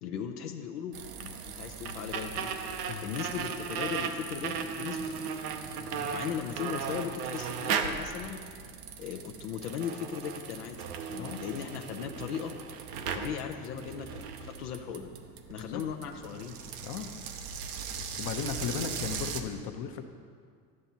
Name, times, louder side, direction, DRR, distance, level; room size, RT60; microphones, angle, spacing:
voice 1, 0.0-2.5 3.0-5.4 6.1-8.4 9.0-12.5 13.1-15.1 15.5-16.6, left 8 dB, 85° left, 3 dB, 0.6 m, -38 dB
sound 1, 0.9-19.4, right 6 dB, 80° right, 0.8 m, -37 dB
voice 2, 5.8-6.1 11.2-11.4 15.6-15.8 16.8-17.1 18.2-20.0, left 7 dB, 55° left, 6 dB, 0.8 m, -36 dB
10.5 x 7.6 x 2.8 m, 2.1 s
hypercardioid pair, 80°, 44 cm